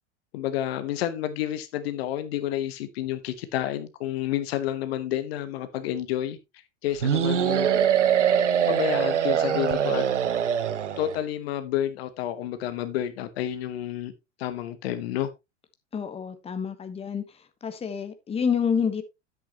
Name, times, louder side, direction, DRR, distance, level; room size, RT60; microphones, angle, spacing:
voice 1, 0.3-6.4 6.8-7.7 8.7-10.0 11.0-14.1 14.4-15.3, left 12 dB, 55° left, 1.2 m, -30 dB
sound 1, 7.0-11.2, right 9 dB, 75° right, 1.0 m, -23 dB
voice 2, 15.9-17.2 17.6-19.0, left 6 dB, 15° left, 1.2 m, -28 dB
10.0 x 8.3 x 3.0 m
figure-of-eight pair, 90°, 36 cm